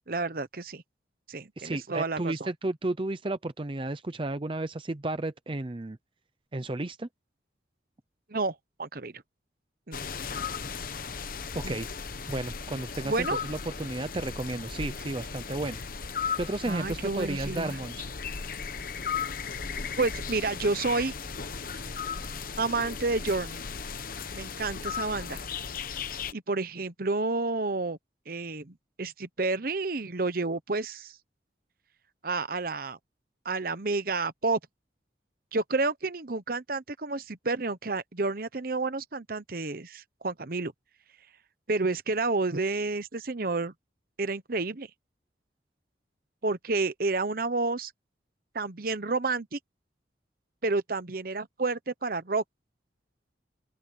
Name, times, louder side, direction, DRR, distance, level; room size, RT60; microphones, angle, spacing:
voice 1, 0.1-0.8 1.3-2.5 8.3-9.2 9.9-10.0 11.6-11.8 13.0-13.4 16.6-17.8 20.0-21.1 22.6-23.6 24.3-25.4 26.3-28.0 28.3-31.1 32.2-33.0 33.4-34.6 35.5-40.7 41.7-43.7 44.2-44.9 46.4-47.9 48.5-49.6 50.6-52.4, right 3 dB, 50° right, 1.0 m, -30 dB
voice 2, 1.6-6.0 6.5-7.1 11.5-11.9 12.3-15.8 16.4-18.0, right 2 dB, 30° right, 0.6 m, -33 dB
sound 1, 9.9-26.3, left 6 dB, 50° left, 1.0 m, -36 dB
open air
head